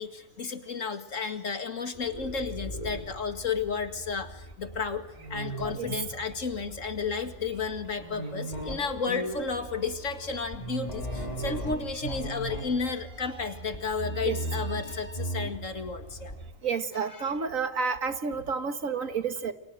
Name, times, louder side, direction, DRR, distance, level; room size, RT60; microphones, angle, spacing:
voice 1, 0.0-16.3 17.2-17.4, left 5 dB, 75° left, 8 dB, 2.4 m, -32 dB
sound 1, 1.9-16.5, right 1 dB, 30° left, 4.8 m, -38 dB
sound 2, 7.4-15.6, equal, 25° right, 7.4 m, -51 dB
voice 2, 16.6-19.5, right 5 dB, 80° right, 9 dB, 2.1 m, -30 dB
29.5 x 24.5 x 7.7 m, 0.95 s
omnidirectional pair, 1.4 m